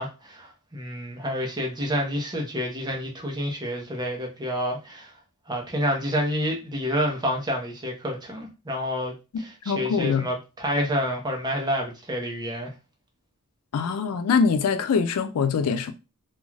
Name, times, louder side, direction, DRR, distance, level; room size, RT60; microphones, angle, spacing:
voice 1, 0.0-5.1 5.5-12.7, equal, 20° right, 0.7 m, -28 dB
voice 2, 9.7-10.2 13.7-15.9, left 5 dB, 90° left, 0.4 m, -23 dB
2.4 x 2.3 x 3.1 m
head